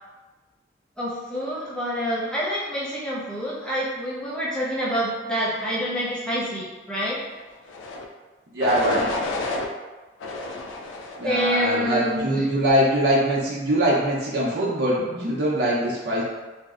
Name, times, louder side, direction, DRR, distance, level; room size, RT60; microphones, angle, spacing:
voice 1, 1.0-7.2 11.2-12.4, equal, 5° left, -7 dB, 0.4 m, -27 dB
sound 1, 7.7-8.1 8.6-9.7 10.2-11.3 11.8-12.3, left 2 dB, 80° left, 0.3 m, -31 dB
voice 2, 8.5-9.1 11.2-16.2, right 1 dB, 60° right, -6 dB, 0.6 m, -22 dB
2.6 x 2.0 x 2.4 m, 1.2 s
head